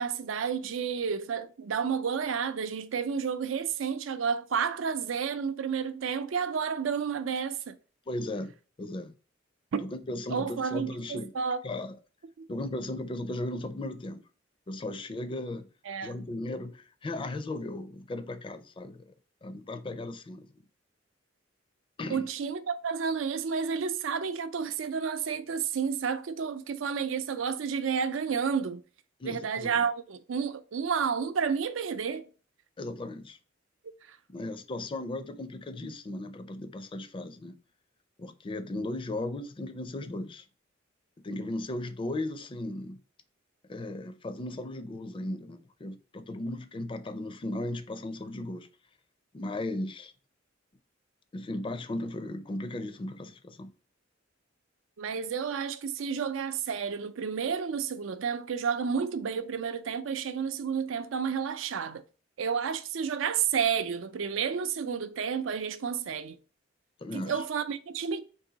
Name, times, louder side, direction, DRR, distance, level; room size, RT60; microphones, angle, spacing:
voice 1, 0.0-7.8 9.7-9.8 10.3-11.6 12.4-12.5 15.9-16.3 22.1-28.8 29.2-32.3 34.1-34.2 55.0-62.0 62.4-66.4 67.1-68.2, right 6 dB, 85° right, 0.4 m, -31 dB
voice 2, 8.1-8.5 8.8-9.1 9.8-11.3 11.6-12.0 12.5-14.2 14.7-15.7 16.0-19.1 19.4-20.5 22.0-22.3 29.2-29.7 32.8-33.4 34.3-37.6 38.2-40.4 41.2-43.0 43.7-48.7 49.3-50.1 51.3-53.7 67.0-67.4, left 1 dB, 25° left, 0.4 m, -36 dB
3.9 x 2.6 x 3.8 m
head